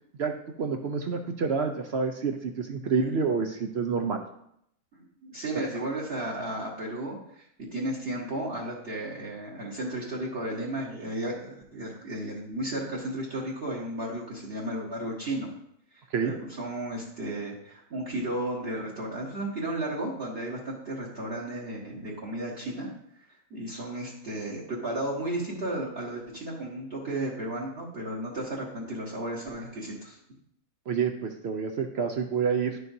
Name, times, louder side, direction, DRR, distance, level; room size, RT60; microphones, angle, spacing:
voice 1, 0.6-4.2 16.1-16.3 30.9-32.8, right 5 dB, 65° right, 5 dB, 0.6 m, -28 dB
voice 2, 4.9-7.4 7.7-15.5 16.2-22.9 23.5-30.2, right 1 dB, 40° right, -3 dB, 1.6 m, -34 dB
10.5 x 6.4 x 2.7 m, 0.74 s
omnidirectional pair, 1.7 m